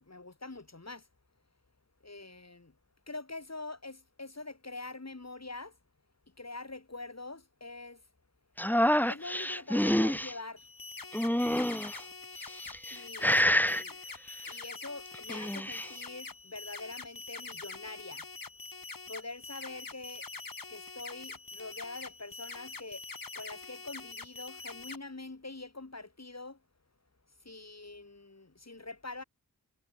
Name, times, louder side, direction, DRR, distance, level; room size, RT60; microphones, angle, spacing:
voice 1, 0.1-1.0 2.0-2.7 3.1-5.7 6.4-8.0 9.1-10.7 12.9-14.0 14.5-18.2 19.1-20.3 20.7-23.0 23.3-26.6 27.4-29.2, left 3 dB, 45° left, 4.8 m, -44 dB
sound 1, 8.6-10.3 11.1-12.0 12.6-13.0 13.2-13.8 15.1-15.9, equal, 5° left, 1.8 m, -27 dB
sound 2, 10.6-25.0, left 4 dB, 65° left, 4.8 m, -45 dB
wide cardioid pair, 50°, 37 cm